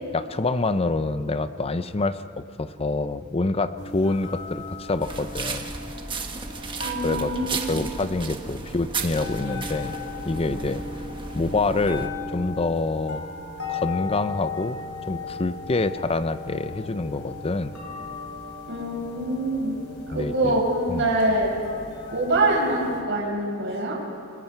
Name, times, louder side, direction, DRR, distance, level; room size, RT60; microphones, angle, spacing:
voice 1, 0.1-5.6 7.0-7.3 7.7-10.0 10.2-10.8 11.3-13.2 13.7-14.8 15.1-17.7 20.1-20.6 20.9-21.1, left 3 dB, 25° left, 12 dB, 0.6 m, -26 dB
sound 1, 3.8-23.0, left 3 dB, 65° left, 3.5 m, -37 dB
sound 2, 5.0-12.1, right 4 dB, 20° right, 1.4 m, -34 dB
voice 2, 6.8-7.8 18.7-21.5 22.1-24.0, right 1 dB, 55° right, -1 dB, 5.7 m, -25 dB
29.5 x 20.5 x 4.7 m, 2.6 s
head